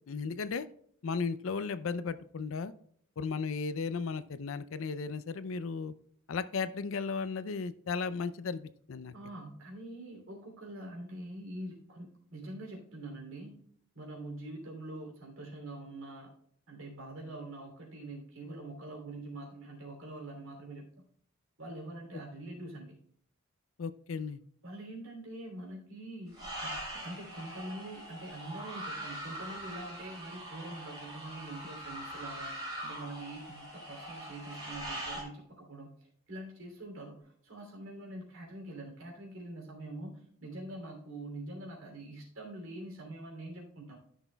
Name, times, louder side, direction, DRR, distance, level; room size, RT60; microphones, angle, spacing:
voice 1, 0.1-0.7 1.0-2.7 3.2-5.9 6.3-9.1 23.8-24.4, left 5 dB, 75° left, 14 dB, 0.5 m, -35 dB
voice 2, 9.1-13.5 13.9-16.3 16.7-20.9 21.6-23.0 24.6-32.5 32.8-35.9 36.3-44.0, right 1 dB, 80° right, 0 dB, 3.0 m, -44 dB
sound 1, 26.3-35.2, right 1 dB, 20° right, 3.6 m, -42 dB
13.5 x 6.1 x 2.3 m, 0.63 s
head